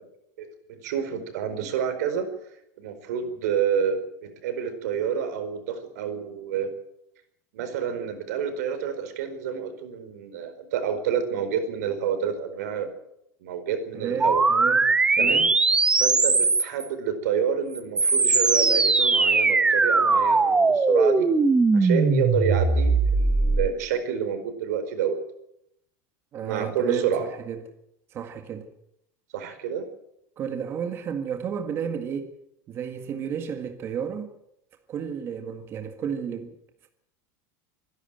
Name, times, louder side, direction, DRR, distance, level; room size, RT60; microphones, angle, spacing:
voice 1, 0.4-2.3 2.8-6.7 7.5-12.9 13.4-14.4 15.2-15.4 16.0-21.3 21.7-25.2 26.4-27.3 29.3-29.8, right 7 dB, 90° right, 4.6 m, -28 dB
voice 2, 13.9-15.5 26.3-27.6 28.1-28.7 30.4-32.3 32.7-34.3 34.9-36.5, right 7 dB, 30° right, 1.8 m, -32 dB
sound 1, 14.2-16.9 17.7-23.7, right 3 dB, 10° right, 1.1 m, -20 dB
24.5 x 11.5 x 9.1 m
supercardioid pair, 165°, 9 cm